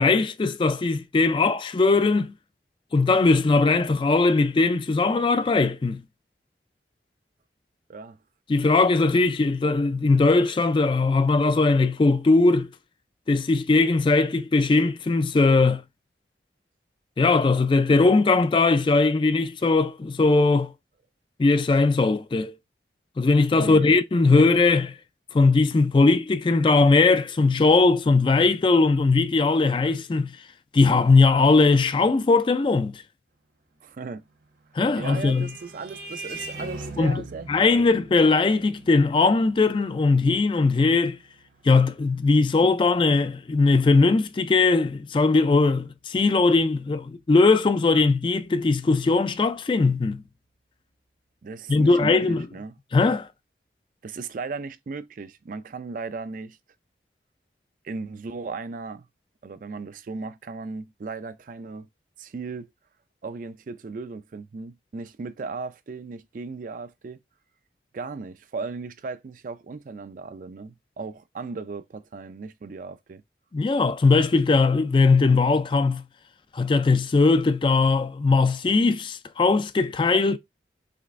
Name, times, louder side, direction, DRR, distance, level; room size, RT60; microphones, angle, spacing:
voice 1, 0.0-2.3 2.9-6.0 8.5-12.7 13.3-15.8 17.2-20.7 21.4-22.5 23.2-24.9 25.3-30.4 30.7-33.0 34.8-35.5 37.0-37.2 37.5-41.2 41.6-50.2 51.7-52.5 52.9-53.3 73.5-76.0 76.5-80.4, left 3 dB, 30° left, 0.3 m, -20 dB
voice 2, 23.5-24.0 33.8-34.2 35.0-37.5 37.8-37.9 51.4-52.7 54.0-56.6 57.8-59.1 59.4-61.9 62.2-62.7 63.2-67.2 67.9-73.2, right 4 dB, 50° right, 0.4 m, -36 dB
Vehicle horn car horn honking, 34.4-43.4, right 2 dB, 65° right, 1.1 m, -43 dB
5.1 x 3.3 x 2.5 m
head